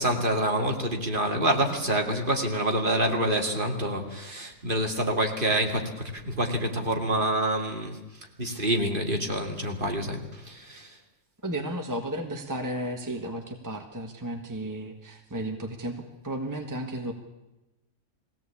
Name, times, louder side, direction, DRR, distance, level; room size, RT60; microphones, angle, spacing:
voice 1, 0.0-11.0, right 1 dB, 35° right, 3 dB, 2.5 m, -27 dB
voice 2, 11.4-17.1, right 1 dB, 15° right, 3 dB, 1.6 m, -33 dB
21.0 x 17.0 x 8.5 m, 1.0 s
omnidirectional pair, 1.5 m